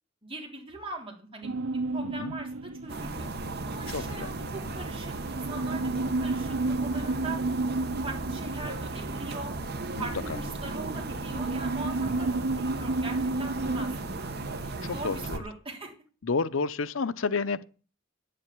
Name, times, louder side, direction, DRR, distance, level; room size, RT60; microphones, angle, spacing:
voice 1, 0.2-1.5 1.9-3.3 3.7-7.4 8.0-9.5 10.0-14.3 14.9-15.9, right 2 dB, 25° right, 3.6 m, -41 dB
sound 1, 1.4-14.0, right 2 dB, 75° right, 0.5 m, -33 dB
voice 2, 2.0-2.3 3.9-4.3 10.0-10.4 14.8-15.4 16.2-17.6, left 4 dB, 70° left, 0.7 m, -30 dB
sound 2, 2.9-15.4, right 2 dB, 50° right, 1.2 m, -36 dB
10.0 x 7.6 x 8.4 m
head